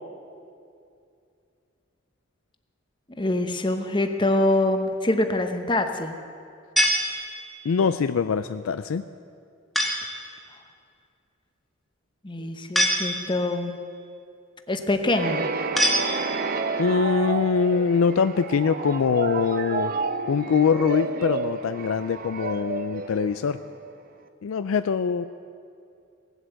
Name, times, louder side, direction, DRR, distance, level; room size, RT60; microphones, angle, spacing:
voice 1, 3.2-6.1 12.2-13.7 14.7-15.4, left 2 dB, 25° left, 6 dB, 0.8 m, -24 dB
sound 1, 6.8-7.7 9.7-10.2 12.7-13.6 15.8-16.6, equal, ahead, 1.3 m, -25 dB
voice 2, 7.6-9.0 16.8-19.9 20.3-23.6 24.4-25.2, left 6 dB, 80° left, 11 dB, 0.4 m, -23 dB
sound 2, 15.1-23.9, right 4 dB, 45° right, 0.7 m, -30 dB
17.5 x 8.0 x 7.6 m, 2.4 s
head